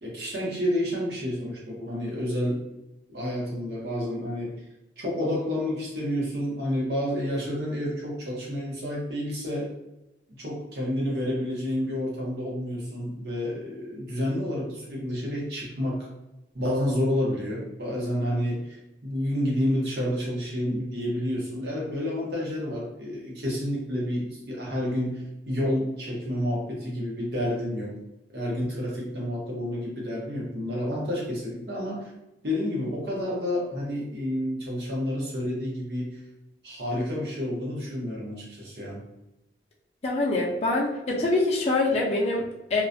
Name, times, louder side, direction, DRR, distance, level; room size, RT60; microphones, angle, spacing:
voice 1, 0.0-2.7 3.1-4.7 5.0-9.7 10.4-16.1 16.5-18.8 19.0-28.0 28.3-32.1 32.4-36.2 36.6-39.0, left 1 dB, 65° right, -4 dB, 0.9 m, -29 dB
voice 2, 40.0-42.8, left 2 dB, 35° left, -4 dB, 0.4 m, -25 dB
2.3 x 2.1 x 2.5 m, 0.92 s
head